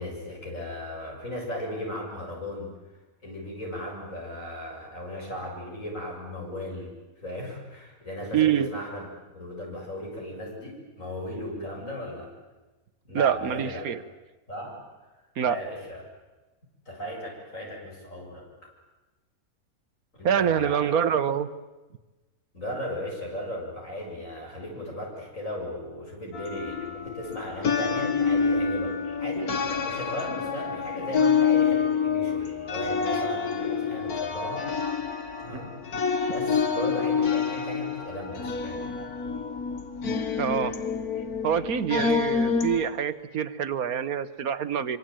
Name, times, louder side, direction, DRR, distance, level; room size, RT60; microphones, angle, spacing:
voice 1, 0.0-2.7 3.2-7.0 7.2-9.1 9.3-12.3 13.0-13.9 14.5-14.8 15.4-16.0 16.9-18.5 20.2-21.0 22.5-34.7 35.4-35.7 36.3-38.9, left 1 dB, 60° left, -1 dB, 8.0 m, -36 dB
voice 2, 8.3-8.7 13.1-14.0 15.4-15.6 20.2-21.5 35.5-35.6 40.4-40.7 41.4-45.0, right 8 dB, 75° right, 13 dB, 1.6 m, -25 dB
sound 1, 26.3-42.9, left 6 dB, 85° left, 2.2 m, -27 dB
25.5 x 25.5 x 9.1 m, 1.1 s
omnidirectional pair, 1.5 m